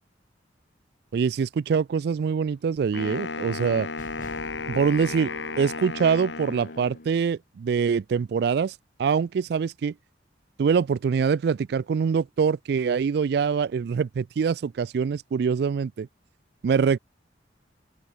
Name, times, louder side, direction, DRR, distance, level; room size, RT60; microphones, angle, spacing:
voice 1, 1.1-3.9 4.7-8.7 9.0-9.9 10.6-16.1 16.6-17.0, right 6 dB, 60° right, 0.3 m, -24 dB
Wind instrument woodwind instrument, 2.9-7.2, left 4 dB, 90° left, 1.6 m, -34 dB
sound 1, 4.0-7.2, left 1 dB, 45° left, 6.1 m, -48 dB
open air
head